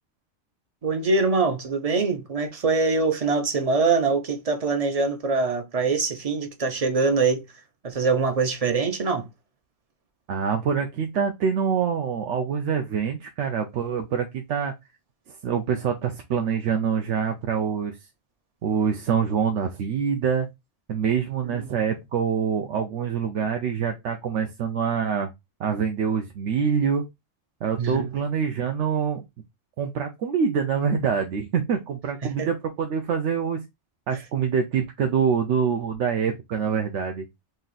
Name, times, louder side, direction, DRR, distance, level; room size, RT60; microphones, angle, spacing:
voice 1, 0.8-7.4 7.8-9.3 21.4-21.8 27.8-28.2 32.2-32.5, right 4 dB, 45° right, 0.5 m, -24 dB
voice 2, 10.3-14.7 15.3-18.0 18.6-20.5 20.9-25.3 25.6-27.0 27.6-29.2 29.8-33.6 34.1-37.3, right 6 dB, 80° right, 0.9 m, -25 dB
3.1 x 2.7 x 3.8 m
omnidirectional pair, 1.2 m